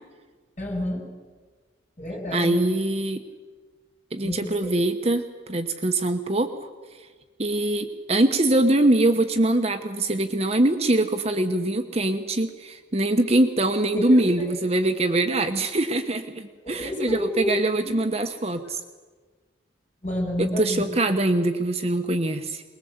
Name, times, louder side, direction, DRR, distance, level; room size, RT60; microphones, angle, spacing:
voice 1, 0.6-1.0 2.0-2.6 4.2-4.7 13.9-14.5 16.6-17.6 17.8-18.0 20.0-20.8, equal, 35° left, -1 dB, 7.1 m, -29 dB
voice 2, 2.3-3.2 4.1-5.2 5.5-6.7 7.4-18.8 20.4-22.6, right 1 dB, 35° right, 6 dB, 1.1 m, -23 dB
22.5 x 21.0 x 8.1 m, 1.4 s
head